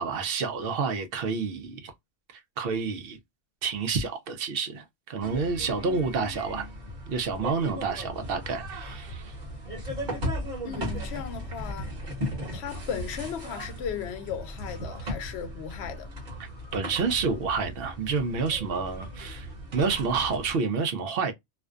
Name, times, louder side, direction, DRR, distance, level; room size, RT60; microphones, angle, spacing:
voice 1, 0.0-1.9 2.6-3.2 3.6-6.7 7.1-9.3 16.7-21.3, right 5 dB, 65° right, 0.7 m, -29 dB
sound 1, 5.2-20.6, equal, 45° right, 1.0 m, -37 dB
voice 2, 10.6-11.9 12.5-16.1, left 7 dB, 75° left, 0.8 m, -36 dB
2.5 x 2.2 x 2.3 m
omnidirectional pair, 1.1 m